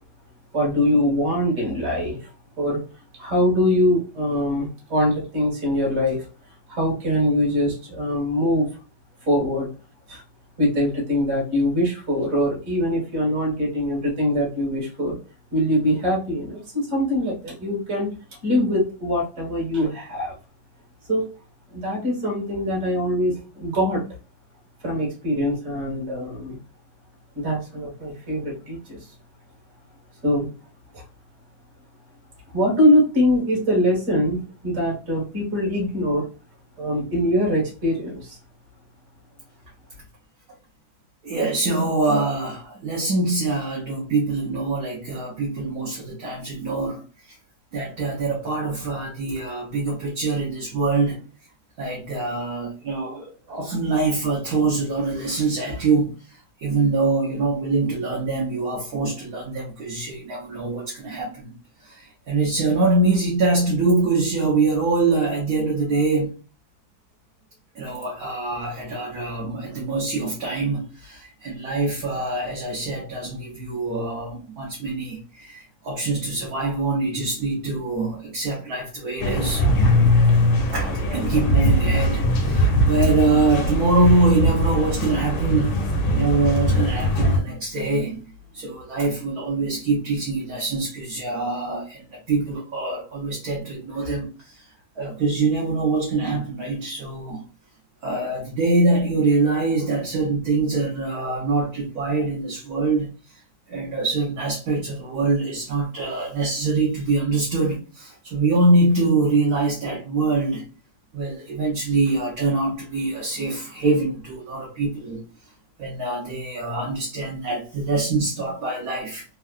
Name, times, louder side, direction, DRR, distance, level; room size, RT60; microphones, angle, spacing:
voice 1, 0.5-2.3 2.6-2.8 3.2-6.2 6.7-8.7 9.3-9.7 10.1-10.2 10.6-15.2 15.5-18.1 18.4-20.4 21.1-21.3 21.7-24.0 24.8-26.6 27.3-29.0 30.2-30.5 30.9-31.0 32.5-36.3 36.8-38.4, left 1 dB, 35° right, 1.6 m, -23 dB
voice 2, 41.2-47.0 47.7-51.2 51.8-61.5 61.8-66.3 67.7-79.6 80.7-85.7 86.1-88.2 88.5-94.6 95.0-97.4 98.0-103.1 103.7-110.7 111.1-115.2 115.8-119.2, right 3 dB, 60° right, 1.2 m, -24 dB
sound 1, 79.2-87.4, left 1 dB, 70° left, 1.3 m, -20 dB
3.6 x 2.3 x 2.4 m
omnidirectional pair, 2.1 m